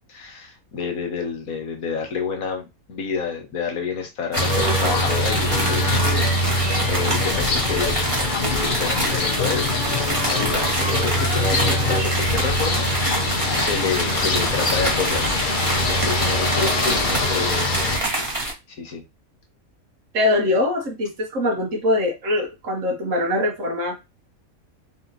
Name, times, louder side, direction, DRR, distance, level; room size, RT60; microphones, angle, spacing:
voice 1, 0.1-8.0 8.4-15.2 15.8-17.7 18.7-19.0, left 5 dB, 80° left, 1.7 m, -29 dB
sound 1, 4.3-18.5, right 2 dB, 25° right, 1.3 m, -27 dB
sound 2, 4.4-18.0, left 2 dB, 45° left, 0.8 m, -23 dB
voice 2, 16.6-17.3 20.1-24.0, left 2 dB, 65° right, 1.5 m, -23 dB
4.2 x 2.9 x 4.0 m
omnidirectional pair, 1.5 m